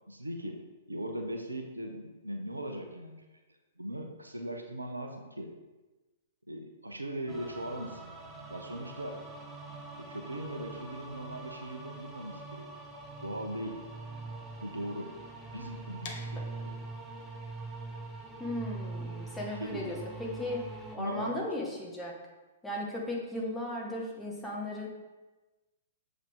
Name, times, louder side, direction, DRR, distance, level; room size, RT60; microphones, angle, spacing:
voice 1, 0.1-0.6 0.9-3.3 3.8-5.5 6.5-8.0 8.5-9.2 10.0-12.7 13.2-13.8 14.6-15.1 15.5-16.8 19.6-19.9 21.0-21.5, right 1 dB, 85° right, 4 dB, 0.7 m, -39 dB
sound 1, 7.3-21.0, right 3 dB, 10° right, 0.8 m, -43 dB
sound 2, 16.0-21.8, left 4 dB, 45° left, 0.9 m, -51 dB
voice 2, 18.4-20.6 20.9-22.1 22.6-24.9, left 1 dB, 10° left, -3 dB, 1.4 m, -36 dB
7.1 x 3.7 x 3.6 m, 1.2 s
figure-of-eight pair, 115°, 0 cm